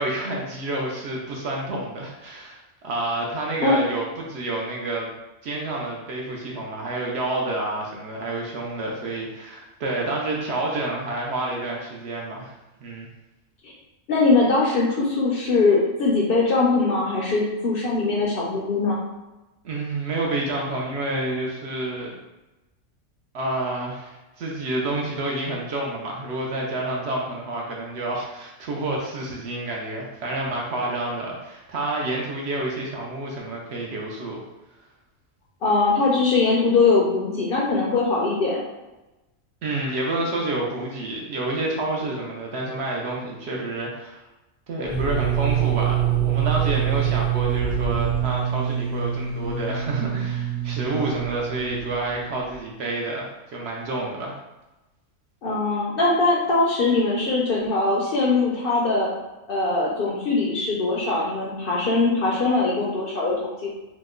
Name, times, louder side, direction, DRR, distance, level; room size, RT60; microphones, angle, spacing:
voice 1, 0.0-5.1 5.4-12.6 12.8-13.1 19.6-22.2 23.3-34.4 39.6-44.2 44.7-54.4, right 2 dB, 65° right, -2 dB, 0.8 m, -29 dB
voice 2, 14.1-19.0 35.6-38.6 55.4-59.1 59.5-63.7, left 3 dB, 60° left, -4 dB, 0.6 m, -21 dB
sound 1, 44.8-52.6, right 9 dB, 40° right, 1.1 m, -25 dB
2.9 x 2.1 x 3.5 m, 1.0 s
omnidirectional pair, 1.3 m